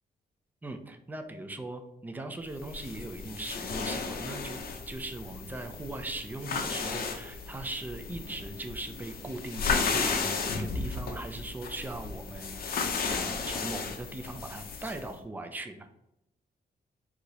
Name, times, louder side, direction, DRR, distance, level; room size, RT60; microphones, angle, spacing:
voice 1, 0.6-4.6 4.9-15.9, right 2 dB, 10° right, 7 dB, 0.4 m, -40 dB
sound 1, 2.5-15.1, left 5 dB, 60° left, 0.6 m, -34 dB
4.8 x 2.8 x 4.0 m, 0.85 s
wide cardioid pair, 165°, 17 cm